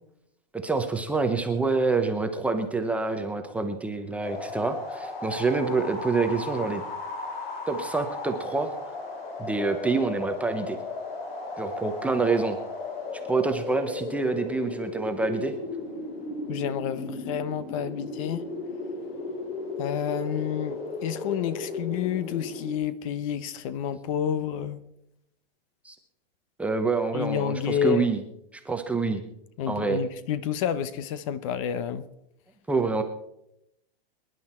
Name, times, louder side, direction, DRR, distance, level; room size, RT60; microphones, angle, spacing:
voice 1, 0.5-6.8 7.7-8.7 9.4-10.8 11.6-12.6 13.3-15.5 25.8-26.0 26.6-28.2 28.6-29.2 29.7-30.0 32.7-33.0, right 4 dB, 5° right, 5 dB, 0.8 m, -26 dB
sound 1, 4.2-22.8, left 3 dB, 80° left, 7.5 m, -35 dB
voice 2, 16.5-18.4 19.8-24.8 27.1-28.1 29.6-32.1, left 9 dB, 35° left, 15 dB, 0.8 m, -29 dB
25.0 x 11.0 x 4.4 m, 0.80 s
hypercardioid pair, 160°, 30 cm